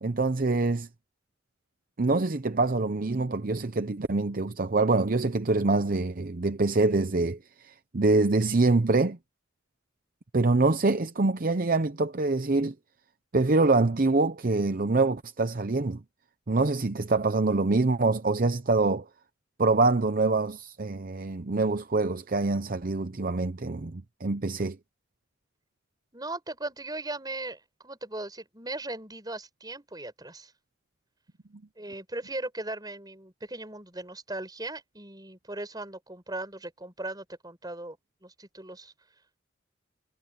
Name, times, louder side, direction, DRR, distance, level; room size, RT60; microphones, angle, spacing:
voice 1, 0.0-0.9 2.0-9.2 10.3-12.7 13.3-16.0 16.5-19.0 19.6-24.8, right 3 dB, 45° right, 0.7 m, -25 dB
voice 2, 26.1-30.5 31.8-38.0 38.2-38.9, right 2 dB, 20° right, 6.5 m, -38 dB
head